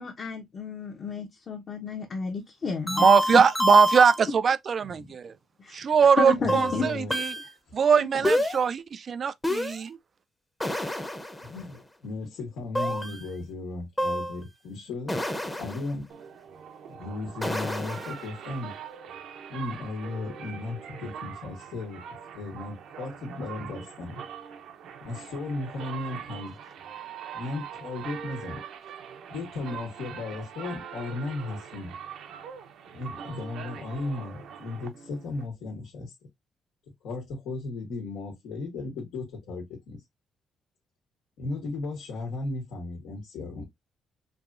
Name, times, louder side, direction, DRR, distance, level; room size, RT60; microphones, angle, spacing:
voice 1, 0.0-3.4 5.6-5.8 6.2-6.9, left 4 dB, 45° left, 0.9 m, -31 dB
sound 1, 2.9-4.2 6.5-7.5 8.2-8.6 9.4-9.8 10.6-11.6 12.7-13.3 14.0-14.4 15.1-15.9 17.4-18.2, left 1 dB, 10° left, 0.7 m, -28 dB
voice 2, 2.9-5.3 5.7-7.2 7.7-10.0, right 6 dB, 45° right, 0.3 m, -21 dB
voice 3, 6.3-7.2 7.7-8.3 11.4-15.2 15.6-16.1 16.9-18.7 19.5-22.0 22.3-24.2 25.0-26.6 27.3-28.6 29.3-31.9 32.9-36.1 37.0-40.0 41.4-43.6, left 3 dB, 90° left, 1.6 m, -36 dB
sound 2, 16.1-35.5, right 7 dB, 75° right, 0.8 m, -42 dB
4.7 x 2.8 x 2.5 m
cardioid pair, 125°, 0 cm